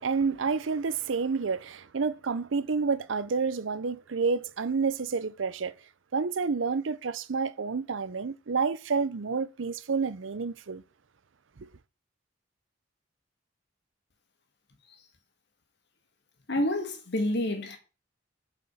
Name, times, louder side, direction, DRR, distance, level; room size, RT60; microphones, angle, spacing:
voice 1, 0.0-5.7 6.1-10.8 11.6-11.7, right 5 dB, 80° right, 0.6 m, -29 dB
voice 2, 16.5-17.8, left 1 dB, 60° left, 1.8 m, -28 dB
7.2 x 4.9 x 5.7 m
head